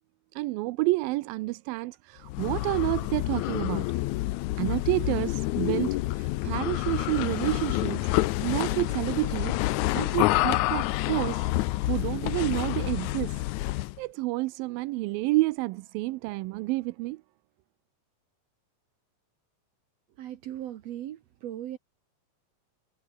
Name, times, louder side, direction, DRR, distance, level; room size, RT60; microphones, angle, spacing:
voice 1, 0.3-3.9 4.6-8.1 8.4-9.6 9.9-11.5 11.9-13.4 14.0-17.2, right 20 dB, 85° right, 2.4 m, -29 dB
sound 1, 2.3-14.0, left 18 dB, 80° left, 1.7 m, -28 dB
voice 2, 20.2-21.8, right 12 dB, 70° right, 1.6 m, -38 dB
omnidirectional pair, 4.1 m